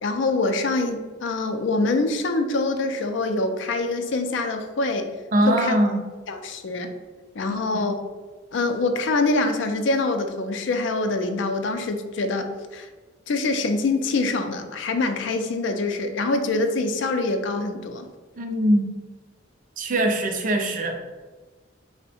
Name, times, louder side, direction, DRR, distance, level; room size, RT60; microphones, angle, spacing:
voice 1, 0.0-5.1 5.5-5.8 6.3-6.9 7.4-8.0 8.5-12.9 13.3-18.0, left 3 dB, 65° left, 6 dB, 0.4 m, -25 dB
voice 2, 5.3-6.0 7.7-7.9 18.4-18.9 19.8-20.9, right 1 dB, 40° right, 3 dB, 0.4 m, -22 dB
3.5 x 2.1 x 4.1 m, 1.3 s
head